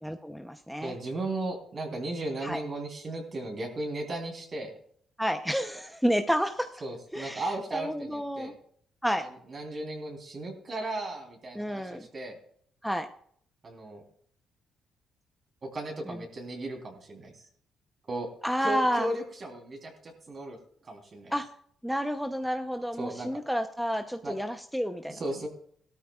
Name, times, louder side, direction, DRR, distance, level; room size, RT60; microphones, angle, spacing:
voice 1, 0.0-0.9 2.4-2.6 5.2-6.7 7.1-8.5 9.0-9.3 11.5-12.1 12.8-13.1 16.1-16.2 18.4-19.1 21.3-21.5 21.8-25.2, equal, ahead, 6 dB, 0.8 m, -30 dB
voice 2, 0.8-4.7 6.8-8.5 9.2-12.4 13.6-14.0 15.6-17.5 18.1-18.3 18.6-20.6 20.8-21.3 23.0-23.4 24.2-24.3 25.1-25.5, right 2 dB, 40° right, 1 dB, 3.6 m, -36 dB
17.5 x 13.0 x 2.4 m, 0.63 s
cardioid pair, 90°, 0 cm